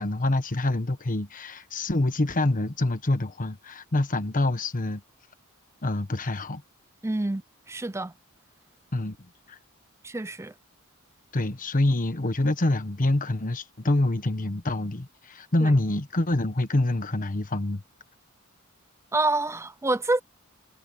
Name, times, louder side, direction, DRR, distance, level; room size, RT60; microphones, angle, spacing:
voice 1, 0.0-5.0 5.8-6.6 8.9-9.2 9.5-9.6 11.3-17.8, left 2 dB, 40° left, 1.2 m, -26 dB
voice 2, 7.0-7.4 7.7-8.1 10.0-10.5 15.6-15.7 19.1-20.2, right 2 dB, 15° right, 0.6 m, -27 dB
head